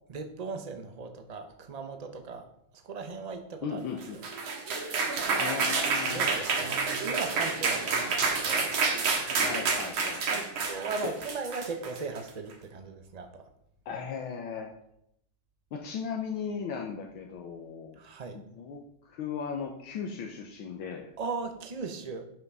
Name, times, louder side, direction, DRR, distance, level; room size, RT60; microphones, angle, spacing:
voice 1, 0.1-2.5 2.7-3.8 6.1-8.7 10.2-13.4 18.0-18.4 21.2-22.2, right 4 dB, 60° right, 6 dB, 0.4 m, -38 dB
voice 2, 3.6-4.2 5.3-6.3 9.2-10.5 11.0-11.1 13.9-14.7 15.7-18.0 18.3-21.1, left 6 dB, 75° left, 2 dB, 1.7 m, -37 dB
sound 1, 4.0-12.3, right 4 dB, 80° right, 2.3 m, -29 dB
11.0 x 5.9 x 5.5 m, 0.76 s
omnidirectional pair, 2.3 m